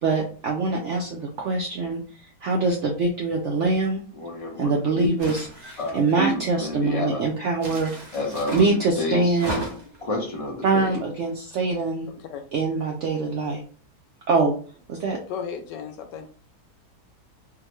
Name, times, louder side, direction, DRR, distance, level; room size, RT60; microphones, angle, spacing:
voice 1, 0.0-2.0 2.4-4.0 4.5-7.9 8.5-9.6 10.6-12.1 12.5-13.6 14.3-14.5 14.9-15.2, right 3 dB, 70° right, 0 dB, 0.6 m, -24 dB
voice 2, 4.2-5.1 5.8-7.2 8.1-8.6 9.0-9.4 10.0-11.0, left 1 dB, 35° left, -1 dB, 0.5 m, -29 dB
sound 1, 5.2-6.1 7.6-8.7 9.3-10.0, right 1 dB, 30° right, 0.9 m, -34 dB
voice 3, 15.3-16.3, left 7 dB, 85° left, 6 dB, 1.3 m, -34 dB
3.5 x 2.1 x 2.9 m, 0.40 s
omnidirectional pair, 1.8 m